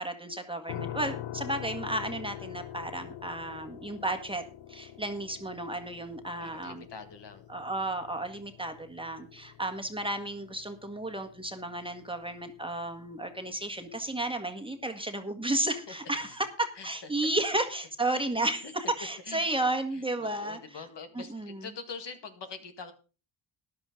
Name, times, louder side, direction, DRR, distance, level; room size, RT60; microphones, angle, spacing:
voice 1, 0.0-4.4 4.7-6.9 7.5-20.8 21.1-21.7, right 2 dB, 10° right, 6 dB, 1.7 m, -33 dB
sound 1, 0.7-13.5, left 12 dB, 80° left, 0.8 m, -45 dB
voice 2, 6.4-7.5 15.9-16.0 16.8-16.9 18.1-18.2 18.6-18.7 19.3-19.4 19.9-22.9, left 5 dB, 65° left, 7 dB, 1.9 m, -44 dB
13.5 x 10.5 x 3.8 m, 0.34 s
cardioid pair, 85°, 45 cm